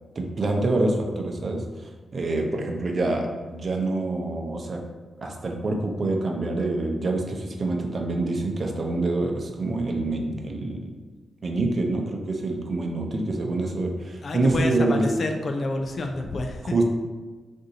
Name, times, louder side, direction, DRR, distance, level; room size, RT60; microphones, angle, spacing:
voice 1, 0.2-1.6 2.1-4.8 5.2-10.9 11.4-15.0 16.7-16.8, right 2 dB, 55° right, 2 dB, 0.5 m, -26 dB
voice 2, 14.2-16.8, left 2 dB, 60° left, 4 dB, 0.4 m, -29 dB
2.6 x 2.6 x 3.9 m, 1.3 s
supercardioid pair, 45°, 0 cm